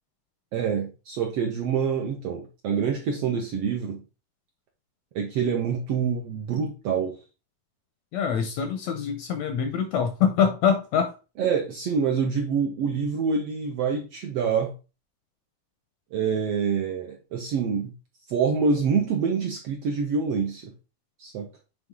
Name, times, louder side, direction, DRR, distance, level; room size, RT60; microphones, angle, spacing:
voice 1, 0.5-4.0 5.1-7.2 11.4-14.7 16.1-17.9 18.3-20.7 21.2-21.5, right 6 dB, 70° right, 1 dB, 1.5 m, -26 dB
voice 2, 8.1-11.1, left 7 dB, 75° left, 6 dB, 1.7 m, -24 dB
7.9 x 3.7 x 3.7 m, 0.31 s
omnidirectional pair, 3.8 m